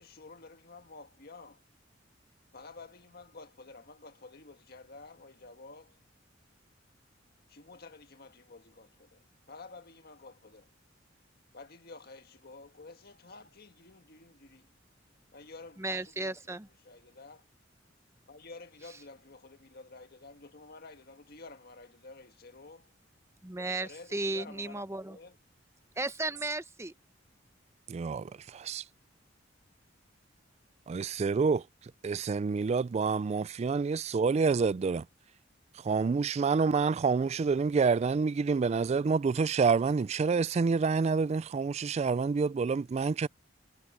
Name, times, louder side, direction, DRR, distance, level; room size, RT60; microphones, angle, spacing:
voice 1, 0.0-1.6 2.5-6.0 7.5-10.7 11.5-14.7 15.3-17.4 18.3-22.9 23.8-25.4, left 3 dB, 55° left, 1.6 m, -51 dB
voice 2, 15.8-16.7 23.4-25.2 26.0-26.9, right 2 dB, 15° right, 0.8 m, -35 dB
voice 3, 27.9-28.8 30.9-31.6 32.0-35.0 35.8-43.3, right 5 dB, 35° right, 0.3 m, -28 dB
head